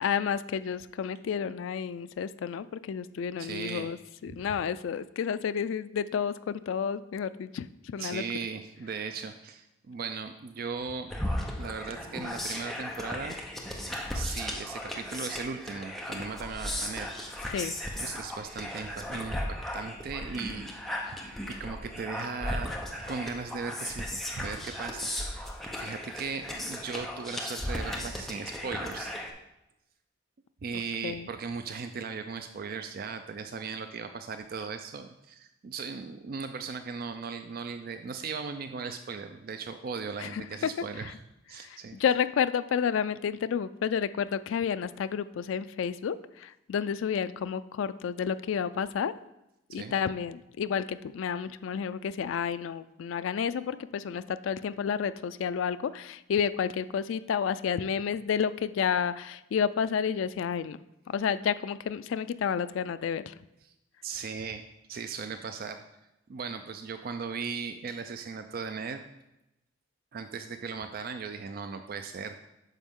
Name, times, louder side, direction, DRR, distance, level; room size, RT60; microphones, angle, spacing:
voice 1, 0.0-8.2 17.5-17.8 31.0-31.3 40.2-40.7 41.0-41.1 41.5-49.1 49.7-60.8 61.1-63.3, left 7 dB, 75° left, 13 dB, 0.3 m, -30 dB
voice 2, 3.4-3.9 4.3-4.4 8.0-11.1 11.6-13.4 13.8-17.1 18.0-20.7 21.0-21.2 21.5-22.7 23.1-29.2 30.6-41.1 41.5-42.0 49.7-49.9 63.6-63.7 64.0-64.6 64.9-65.8 66.3-69.1 70.1-72.5, right 5 dB, 50° right, 8 dB, 0.4 m, -38 dB
sound 1, 11.1-29.3, left 1 dB, ahead, 0.7 m, -36 dB
9.1 x 6.2 x 3.7 m, 0.90 s
head